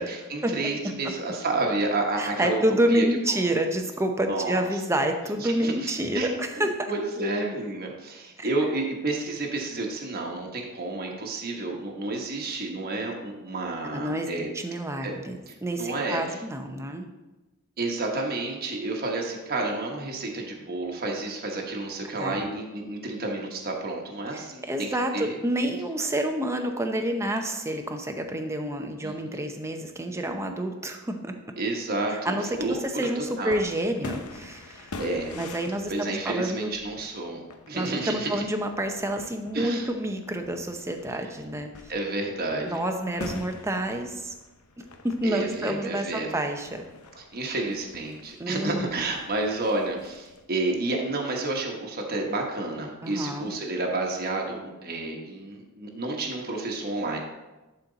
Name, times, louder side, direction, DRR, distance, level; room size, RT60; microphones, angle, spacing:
voice 1, 0.0-2.6 2.9-3.4 4.3-4.6 5.4-14.5 15.0-15.1 15.5-16.4 17.8-24.9 25.1-25.3 29.0-29.4 31.6-33.6 34.6-35.4 35.9-38.4 39.5-39.9 41.9-42.8 45.2-46.4 47.1-57.2, right 2 dB, 45° right, 0 dB, 1.2 m, -30 dB
voice 2, 2.2-6.7 8.4-8.5 13.9-14.3 14.5-17.1 22.2-22.4 24.3-31.3 32.1-34.9 35.3-36.7 37.7-41.9 42.7-44.3 44.8-46.9 48.4-49.1 53.0-53.5, right 1 dB, 10° right, 4 dB, 0.7 m, -28 dB
sound 1, 32.5-50.4, left 2 dB, 80° left, 0.8 m, -45 dB
11.0 x 4.4 x 4.0 m, 1.1 s
head